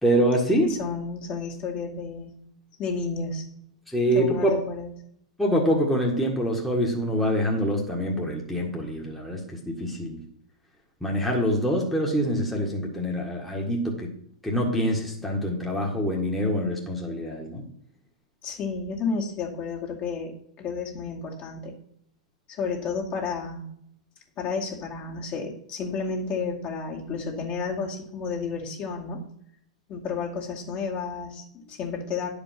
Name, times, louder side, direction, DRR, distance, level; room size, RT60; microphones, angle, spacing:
voice 1, 0.0-0.7 3.9-4.6 5.4-10.2 11.0-14.1 14.4-17.7, equal, ahead, -2 dB, 1.7 m, -25 dB
voice 2, 0.6-2.3 2.8-3.5 4.1-4.9 18.4-21.8 22.5-23.7 24.4-29.2 29.9-32.3, left 5 dB, 35° left, -1 dB, 2.3 m, -31 dB
10.0 x 5.1 x 6.0 m, 0.70 s
hypercardioid pair, 120°, 4 cm